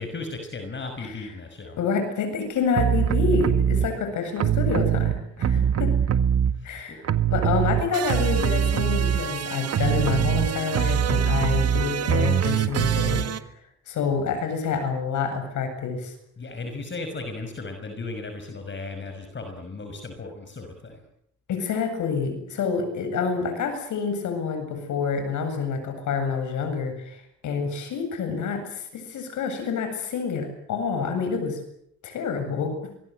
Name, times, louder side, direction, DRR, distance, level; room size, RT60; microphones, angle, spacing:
voice 1, 0.0-1.8 6.5-7.0 16.4-21.0, left 3 dB, 40° left, 6 dB, 5.8 m, -36 dB
voice 2, 1.8-5.9 6.6-7.0 7.3-13.2 13.9-16.1 21.5-27.2 27.4-31.6 32.0-32.8, left 5 dB, 75° left, 7 dB, 7.8 m, -27 dB
sound 1, 2.8-3.9 4.4-6.8 7.0-13.4, right 9 dB, 55° right, 1.7 m, -23 dB
26.0 x 22.5 x 7.9 m, 0.72 s
cardioid pair, 90°, 30 cm